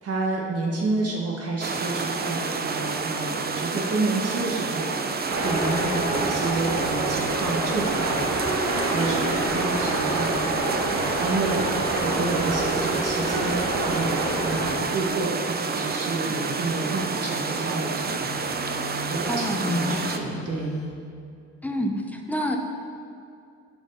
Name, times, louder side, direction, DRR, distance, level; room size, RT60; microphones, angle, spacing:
voice 1, 0.0-13.6 13.9-18.2 19.1-20.8, right 3 dB, 50° right, -3 dB, 1.4 m, -29 dB
sound 1, 1.6-20.2, right 4 dB, 30° right, 0.7 m, -29 dB
sound 2, 5.3-14.7, right 1 dB, 70° right, 2.0 m, -27 dB
Telephone, 18.2-19.4 20.2-20.9, left 1 dB, 70° left, 1.6 m, -41 dB
voice 2, 19.3-20.2 21.6-22.6, left 1 dB, 5° left, 3 dB, 0.9 m, -28 dB
10.0 x 4.6 x 5.5 m, 2.4 s
cardioid pair, 90°, 30 cm